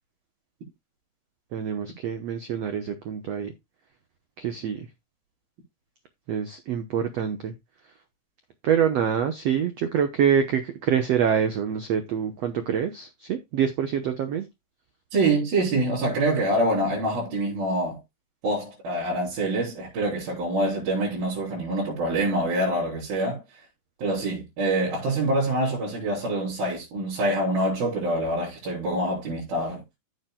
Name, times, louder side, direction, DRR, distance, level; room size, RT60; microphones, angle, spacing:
voice 1, 1.5-3.5 4.4-4.9 6.3-7.5 8.6-14.5, right 8 dB, 85° right, 1.4 m, -25 dB
voice 2, 15.1-18.0 18.4-23.4 24.0-29.8, right 1 dB, 65° right, 5.7 m, -25 dB
14.5 x 7.3 x 2.3 m
omnidirectional pair, 4.5 m